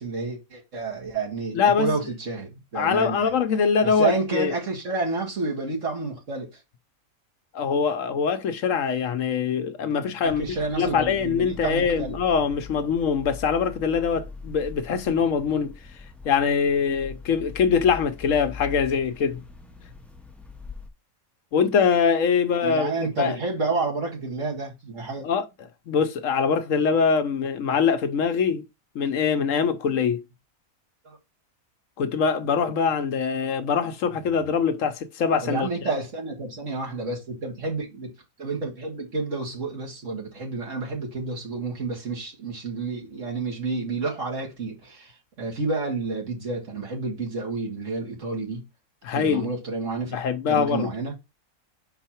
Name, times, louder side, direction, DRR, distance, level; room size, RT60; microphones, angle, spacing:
voice 1, 0.0-3.3 3.8-6.6 10.2-12.2 22.6-25.3 31.0-31.2 35.4-38.1 38.4-45.1 45.4-48.6 49.1-50.2 50.5-51.1, right 3 dB, 60° right, 2.4 m, -30 dB
voice 2, 1.5-1.9 2.7-4.5 7.5-10.4 10.8-15.8 16.2-19.4 21.5-22.9 23.2-23.4 25.2-25.5 25.9-28.7 28.9-30.2 32.0-35.9 49.0-49.5 50.1-50.9, left 6 dB, 70° left, 1.1 m, -23 dB
sound 1, 10.2-20.9, left 5 dB, ahead, 0.4 m, -42 dB
5.5 x 4.6 x 4.4 m
omnidirectional pair, 1.4 m